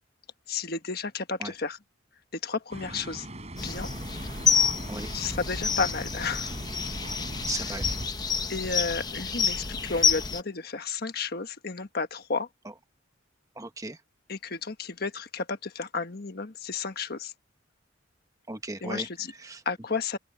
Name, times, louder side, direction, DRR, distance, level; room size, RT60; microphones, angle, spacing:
voice 1, 0.5-1.8 2.3-3.3 3.6-3.9 4.2-4.6 5.1-6.5 8.5-12.5 14.3-17.3 18.8-19.3 19.6-20.2, left 4 dB, 50° left, 1.4 m, -32 dB
sound 1, 2.7-8.1, right 1 dB, 35° right, 4.1 m, -39 dB
sound 2, 3.6-10.4, left 6 dB, 20° left, 0.9 m, -28 dB
voice 2, 7.5-7.8 13.5-14.0 18.5-19.1 19.4-19.6, right 2 dB, 20° right, 1.3 m, -36 dB
open air
head